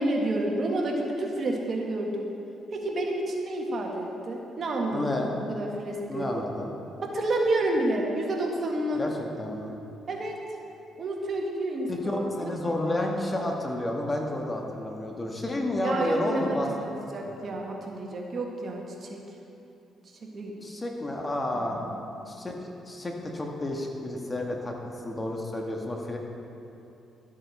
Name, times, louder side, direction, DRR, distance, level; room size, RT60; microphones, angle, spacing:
voice 1, 0.0-2.3 2.7-5.0 5.3-6.3 7.0-9.0 10.1-10.4 11.0-12.8 15.8-19.2 20.2-20.5 21.6-22.0, right 1 dB, 50° right, 0 dB, 1.5 m, -30 dB
voice 2, 4.9-5.3 6.1-6.7 9.0-9.1 9.4-9.7 11.9-16.7 20.6-21.8 22.3-22.6 22.9-26.2, left 1 dB, 25° left, 1 dB, 1.4 m, -30 dB
13.0 x 8.2 x 4.2 m, 2.8 s
cardioid pair, 90°, 0 cm